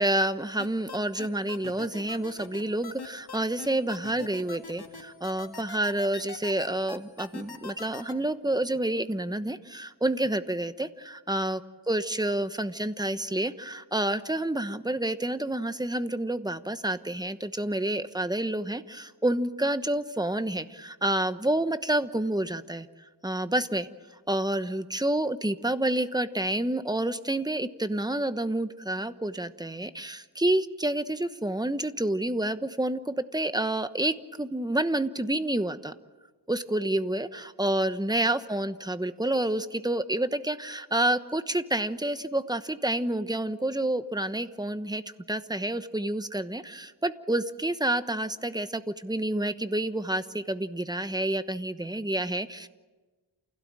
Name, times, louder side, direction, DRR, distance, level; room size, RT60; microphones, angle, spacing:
voice 1, 0.0-11.6 11.9-22.9 23.2-23.9 24.3-35.9 36.5-45.0 45.3-52.7, right 1 dB, 10° right, 11 dB, 1.1 m, -29 dB
sound 1, 0.6-8.1, left 4 dB, 50° left, 2.9 m, -41 dB
28.5 x 17.0 x 8.9 m, 1.3 s
wide cardioid pair, 85°, 48 cm